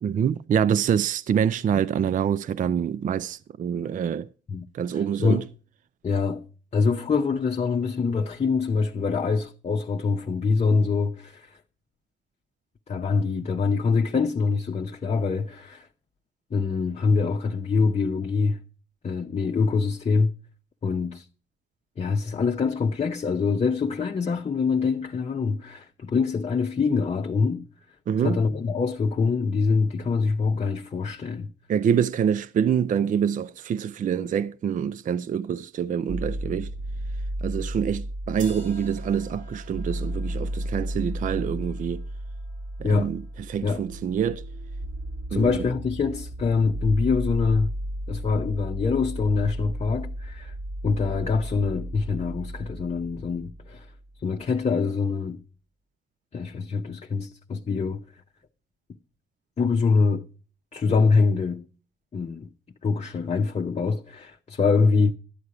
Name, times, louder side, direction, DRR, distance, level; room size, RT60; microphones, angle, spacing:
voice 1, 0.0-4.3 4.7-5.5 28.1-28.4 31.7-36.7 37.4-42.0 42.8-44.4 45.3-45.6, right 8 dB, 40° right, 0.4 m, -26 dB
voice 2, 6.0-6.4 6.7-11.6 12.9-15.9 16.5-18.6 19.0-20.3 20.8-21.3 22.0-27.6 28.2-31.5 42.8-43.1 43.6-43.8 45.3-47.7 48.1-50.5 50.8-53.9 54.2-55.4 56.3-58.0 59.6-60.2 60.7-61.6 62.1-62.5 62.8-65.1, left 4 dB, 35° left, 0.7 m, -24 dB
sound 1, 36.1-54.0, right 1 dB, 60° right, 1.6 m, -34 dB
sound 2, 38.4-44.3, right 4 dB, 80° right, 3.1 m, -50 dB
12.5 x 8.2 x 4.8 m
cardioid pair, 90°, 20 cm